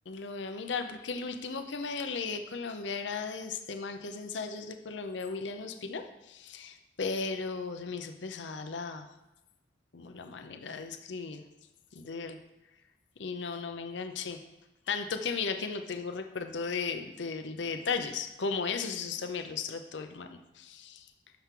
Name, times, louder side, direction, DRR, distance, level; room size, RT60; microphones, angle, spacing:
voice 1, 0.1-9.1 9.9-11.4 11.9-12.4 13.2-14.4 14.9-21.1, left 5 dB, 85° left, 7 dB, 0.6 m, -36 dB
11.5 x 5.9 x 3.7 m, 0.97 s
head